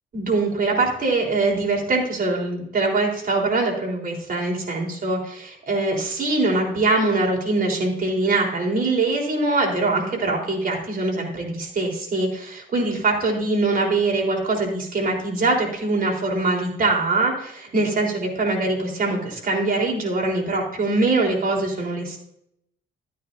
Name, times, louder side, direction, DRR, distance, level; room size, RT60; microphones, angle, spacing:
voice 1, 0.1-22.2, right 3 dB, 45° right, 0 dB, 3.9 m, -23 dB
13.0 x 9.6 x 2.7 m, 0.73 s
cardioid pair, 90°, 20 cm